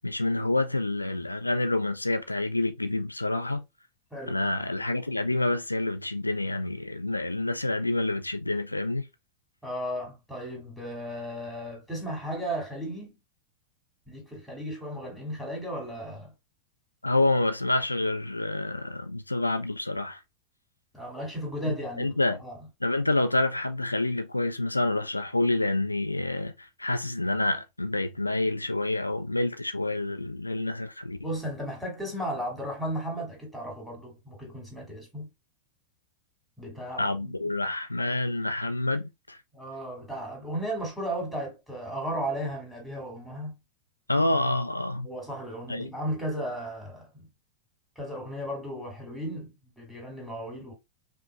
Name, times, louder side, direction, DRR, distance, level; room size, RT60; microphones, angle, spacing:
voice 1, 0.0-3.6 4.3-9.1 17.0-20.2 21.7-22.4 22.8-31.2 37.0-39.4 44.1-45.1 45.7-45.9, left 2 dB, 85° left, 0.4 m, -28 dB
voice 2, 4.1-4.4 9.6-13.1 14.1-16.3 20.9-22.6 31.2-35.3 36.6-37.3 39.5-43.5 45.0-47.3 48.0-50.7, equal, ahead, 2.3 m, -35 dB
5.1 x 2.7 x 2.4 m
figure-of-eight pair, 90°, 0 cm